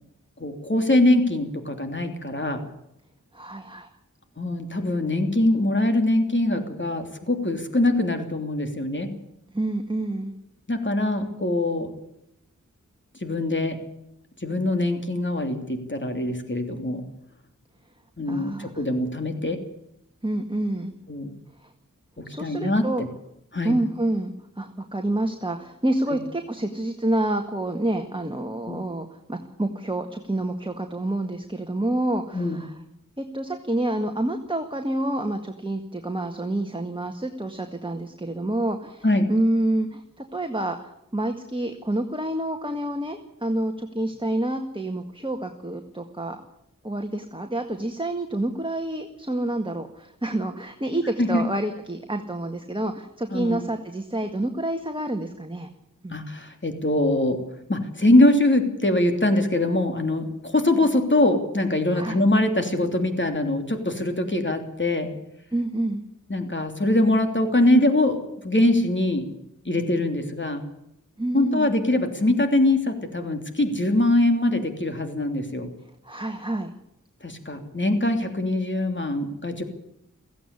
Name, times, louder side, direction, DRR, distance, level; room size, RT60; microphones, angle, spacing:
voice 1, 0.4-2.6 4.4-9.1 10.7-11.9 13.2-13.8 14.4-17.0 18.2-19.6 21.1-21.3 22.2-23.1 23.5-23.7 28.7-28.8 32.3-32.6 39.0-39.3 51.2-51.4 53.3-53.6 56.1-57.4 57.7-65.1 66.3-69.3 69.6-70.6 71.3-75.7 77.2-79.6, left 1 dB, 40° left, 6 dB, 3.1 m, -23 dB
voice 2, 3.3-3.9 9.5-10.3 18.3-18.8 20.2-20.9 21.6-21.7 22.2-23.0 23.6-32.8 33.2-46.4 46.8-55.7 56.0-56.2 61.9-62.2 65.5-66.1 71.2-71.7 76.0-76.7, right 1 dB, 15° right, 5 dB, 1.8 m, -28 dB
17.0 x 15.5 x 9.8 m, 0.80 s
wide cardioid pair, 55°, 31 cm